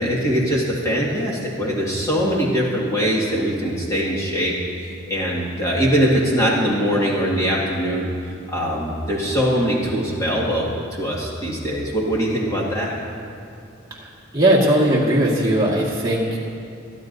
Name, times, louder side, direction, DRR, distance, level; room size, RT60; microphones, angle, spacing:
voice 1, 0.0-4.5 4.8-8.1 8.5-13.0, equal, 15° left, -4 dB, 1.9 m, -22 dB
voice 2, 14.3-16.4, right 1 dB, 20° right, -5 dB, 1.8 m, -18 dB
23.5 x 10.5 x 2.7 m, 2.6 s
head